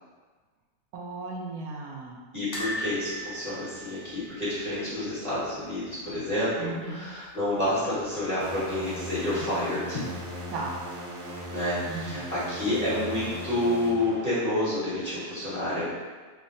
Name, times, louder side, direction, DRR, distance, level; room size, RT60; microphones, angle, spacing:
voice 1, 0.9-2.2 6.6-7.0 10.5-10.8 11.8-12.3, right 3 dB, 90° right, 0 dB, 1.1 m, -36 dB
voice 2, 2.3-10.0 11.5-15.9, left 1 dB, 30° left, -12 dB, 1.5 m, -29 dB
sound 1, 2.5-5.6 5.8-6.0 6.3-6.4 7.6-8.2 8.7-8.8, equal, 60° left, 1.1 m, -38 dB
sound 2, 8.4-14.9, equal, 50° right, 0.5 m, -39 dB
3.3 x 2.1 x 3.8 m, 1.4 s
omnidirectional pair, 1.5 m